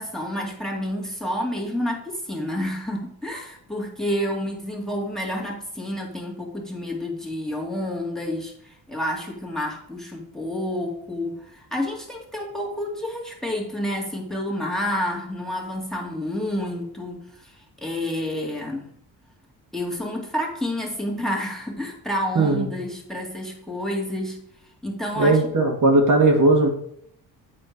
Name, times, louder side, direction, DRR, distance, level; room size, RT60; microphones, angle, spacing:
voice 1, 0.0-18.9 19.7-24.4 24.8-25.4, left 1 dB, ahead, -1 dB, 2.3 m, -29 dB
voice 2, 22.4-22.7 25.2-26.7, right 2 dB, 50° right, 1 dB, 2.0 m, -18 dB
8.8 x 4.3 x 5.2 m, 0.69 s
cardioid pair, 65°, 39 cm